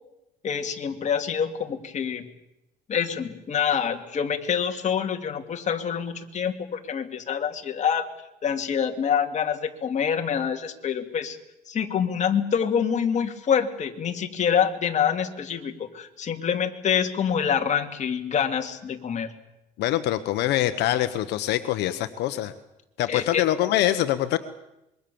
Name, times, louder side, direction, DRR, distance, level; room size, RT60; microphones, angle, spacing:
voice 1, 0.4-2.3 2.9-8.1 8.4-11.4 11.7-19.3 23.1-23.4, left 7 dB, 45° left, 4 dB, 2.8 m, -26 dB
voice 2, 19.8-22.5 23.0-24.4, left 13 dB, 85° left, 10 dB, 1.2 m, -24 dB
26.0 x 23.0 x 7.1 m, 0.91 s
cardioid pair, 110°, 17 cm